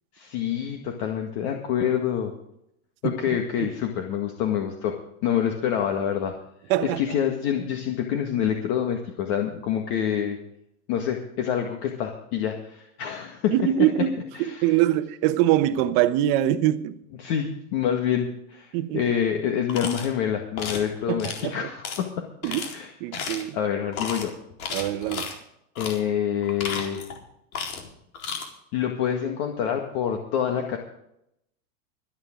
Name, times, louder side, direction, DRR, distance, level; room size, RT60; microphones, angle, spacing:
voice 1, 0.1-2.3 3.0-5.0 5.2-6.3 6.8-10.4 10.9-13.5 14.3-14.8 17.2-22.3 22.7-22.9 23.5-24.3 25.8-27.0 28.7-30.8, left 9 dB, 50° left, 1.9 m, -27 dB
voice 2, 6.7-7.0 13.5-14.1 14.6-17.0 18.7-19.0 21.1-21.6 22.4-22.7 23.0-23.6 24.7-25.3, right 13 dB, 45° right, 1.2 m, -23 dB
sound 1, 19.7-20.1 20.6-20.9 21.2-21.4 21.8-22.0 22.4-22.7 23.1-23.5 23.9-24.2 24.6-25.3 25.8-26.0 26.4-27.2 27.5-27.9 28.1-28.5, left 6 dB, 80° left, 4.2 m, -33 dB
25.0 x 8.9 x 3.8 m
supercardioid pair, 150°, 42 cm